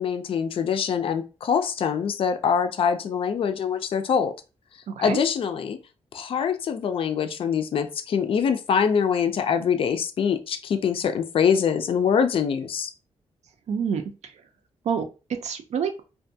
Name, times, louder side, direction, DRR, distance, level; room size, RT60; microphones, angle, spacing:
voice 1, 0.0-4.3 5.0-5.8 6.1-12.9, left 7 dB, 55° left, 8 dB, 0.3 m, -24 dB
voice 2, 4.9-5.2 13.7-14.0 14.9-16.0, right 7 dB, 80° right, 6 dB, 0.5 m, -27 dB
2.5 x 2.2 x 2.6 m, 0.31 s
wide cardioid pair, 130°, 11 cm